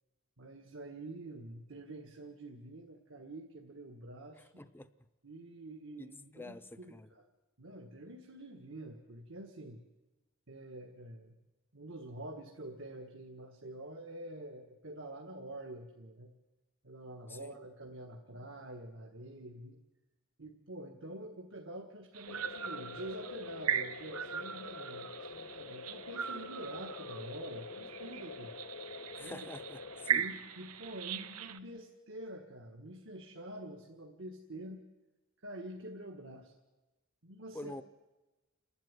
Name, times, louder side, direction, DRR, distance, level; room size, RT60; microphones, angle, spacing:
voice 1, 0.4-4.6 5.2-7.2 7.6-9.8 10.5-11.3 11.7-16.3 16.8-19.8 20.4-28.5 29.2-29.5 30.1-34.9 35.4-36.5 37.2-37.7, right 1 dB, 60° right, 2 dB, 1.8 m, -47 dB
voice 2, 4.6-4.9 6.0-7.1 17.3-17.5 29.2-30.2 37.5-37.8, left 1 dB, 10° left, 13 dB, 0.6 m, -47 dB
sound 1, 22.1-31.6, right 8 dB, 90° right, 0.9 m, -39 dB
sound 2, 22.3-30.2, left 4 dB, 55° left, 0.6 m, -46 dB
29.5 x 12.0 x 9.9 m, 1.1 s
head